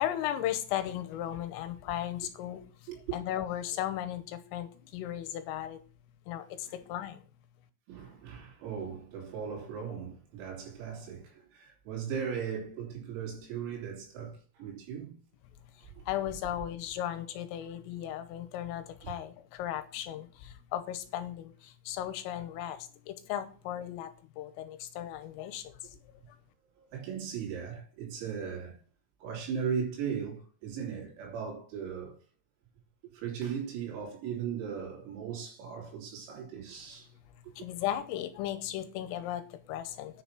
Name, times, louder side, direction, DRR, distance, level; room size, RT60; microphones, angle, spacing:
voice 1, 0.0-2.6 3.1-5.8 6.3-7.2 16.1-25.8 37.6-40.2, left 12 dB, 80° left, 3.5 m, -36 dB
voice 2, 7.9-15.1 16.0-16.1 19.0-19.1 26.8-28.8 29.2-32.2 33.0-37.1 37.4-37.7, right 7 dB, 85° right, 6.0 m, -38 dB
10.0 x 5.9 x 6.0 m
omnidirectional pair, 6.0 m